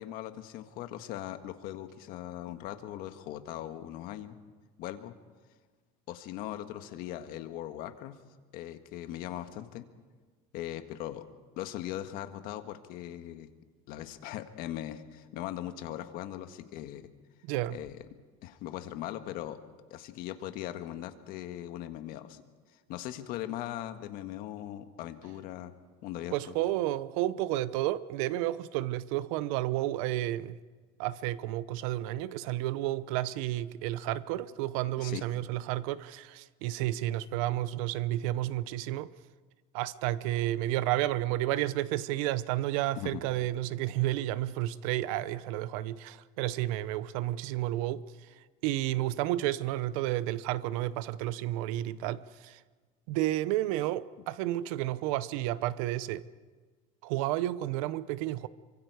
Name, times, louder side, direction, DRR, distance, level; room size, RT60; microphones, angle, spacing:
voice 1, 0.0-4.4 4.8-5.1 6.1-8.1 8.5-9.8 10.5-11.2 11.6-13.5 13.9-17.0 17.7-17.9 18.4-19.6 19.9-22.4 22.9-25.7 26.0-26.3 35.0-35.2 43.0-43.2, left 13 dB, 60° left, 1.6 m, -39 dB
voice 2, 17.4-17.8 26.3-30.6 31.0-39.1 39.7-52.6 53.1-56.3 57.0-58.5, right 15 dB, 85° right, 0.8 m, -31 dB
27.5 x 24.5 x 4.8 m
cardioid pair, 150°, 17 cm